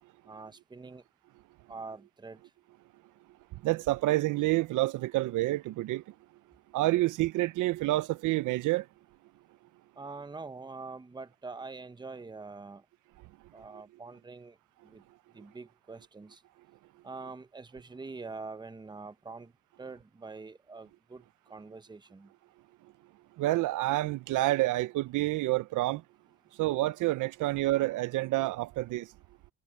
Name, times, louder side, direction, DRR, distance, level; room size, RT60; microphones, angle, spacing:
voice 1, 0.3-1.0 1.7-2.4 10.0-12.8 13.5-14.6 14.8-15.0 15.3-16.4 17.0-19.5 19.8-22.3, right 4 dB, 15° right, 0.9 m, -44 dB
voice 2, 3.6-6.0 6.7-8.8 23.4-26.0 26.6-29.1, right 18 dB, 75° right, 0.6 m, -28 dB
cardioid pair, 115°, 31 cm